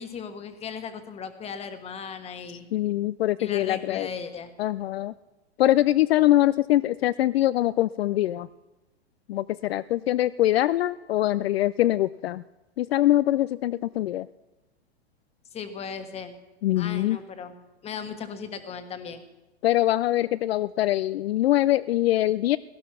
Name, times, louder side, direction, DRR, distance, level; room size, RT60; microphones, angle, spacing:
voice 1, 0.0-2.7 3.4-4.5 15.5-16.3 16.8-17.5 17.8-19.2, left 6 dB, 20° left, 8 dB, 1.4 m, -37 dB
voice 2, 2.7-4.1 4.6-5.1 5.6-8.5 9.3-12.4 12.8-14.3 16.6-17.2 19.6-22.6, left 14 dB, 65° left, 16 dB, 0.5 m, -23 dB
17.5 x 12.0 x 6.0 m, 1.1 s
hypercardioid pair, 130°, 33 cm